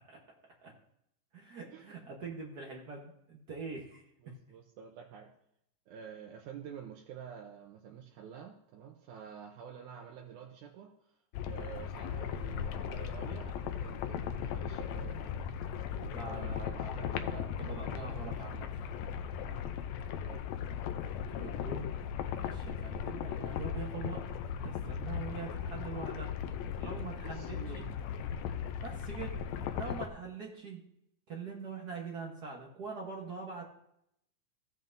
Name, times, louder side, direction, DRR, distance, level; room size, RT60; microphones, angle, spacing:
voice 1, 1.3-4.3 16.0-18.7 21.3-21.9 22.4-26.3 26.8-27.9 28.8-29.4 29.8-30.8 31.3-33.6, right 4 dB, 55° right, -1 dB, 1.1 m, -44 dB
voice 2, 4.2-5.3 5.9-15.3 16.3-18.7 20.1-20.5 27.2-28.0, right 8 dB, 90° right, 1 dB, 2.3 m, -49 dB
sound 1, 11.3-30.1, left 8 dB, 75° left, 1.8 m, -37 dB
15.0 x 7.3 x 2.7 m, 0.77 s
omnidirectional pair, 3.4 m